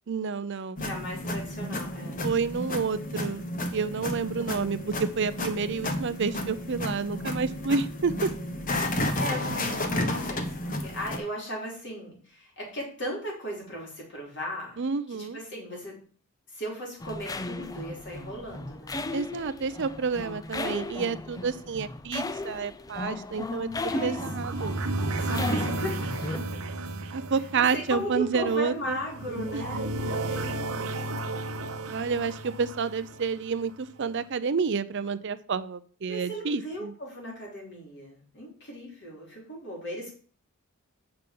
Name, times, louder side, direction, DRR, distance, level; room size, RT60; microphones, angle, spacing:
voice 1, 0.1-0.8 2.2-8.3 14.8-15.4 19.1-23.7 24.0-24.8 27.1-29.0 29.5-29.6 31.9-36.9, right 5 dB, 55° right, 14 dB, 0.5 m, -29 dB
voice 2, 0.8-2.2 9.2-14.8 15.1-16.0 16.5-19.0 23.9-24.2 25.2-26.6 27.5-31.0 36.1-40.1, equal, 55° left, -2 dB, 4.0 m, -37 dB
sound 1, 0.8-11.2, left 1 dB, 40° left, 1.1 m, -32 dB
sound 2, 17.0-26.4, left 2 dB, 15° left, 0.4 m, -35 dB
sound 3, 23.7-33.8, right 2 dB, 80° right, 1.0 m, -33 dB
8.0 x 5.7 x 5.3 m, 0.43 s
head